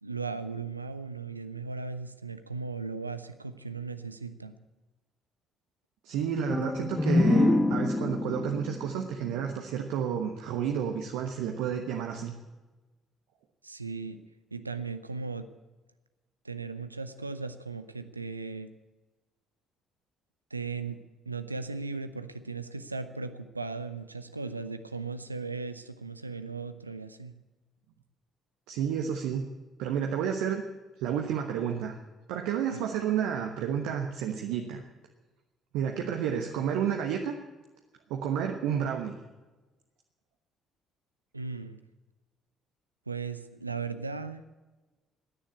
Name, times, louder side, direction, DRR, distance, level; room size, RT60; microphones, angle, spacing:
voice 1, 0.0-4.5 13.6-14.2 14.5-15.5 16.4-18.7 20.5-21.0 21.3-27.4 32.7-32.8 41.3-41.8 43.1-44.4, right 4 dB, 85° right, 11 dB, 0.6 m, -37 dB
voice 2, 6.0-12.3 28.7-29.5 29.8-30.6 31.0-32.0 32.3-34.8 35.7-37.3 38.1-39.1, right 8 dB, 65° right, 3 dB, 1.2 m, -30 dB
sound 1, 6.5-10.2, left 2 dB, 20° left, 1.4 m, -27 dB
16.0 x 10.0 x 8.3 m, 1.2 s
figure-of-eight pair, 50°, 0 cm